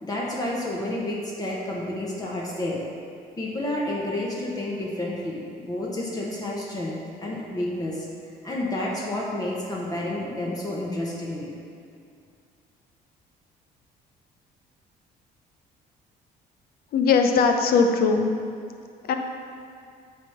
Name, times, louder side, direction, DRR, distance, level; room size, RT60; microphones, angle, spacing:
voice 1, 0.0-2.8 3.4-8.1 8.4-11.5, left 1 dB, 20° left, -4 dB, 1.2 m, -30 dB
voice 2, 16.9-18.3 19.0-19.2, left 5 dB, 65° left, 5 dB, 0.7 m, -20 dB
8.6 x 3.6 x 5.7 m, 2.3 s
cardioid pair, 110°, 17 cm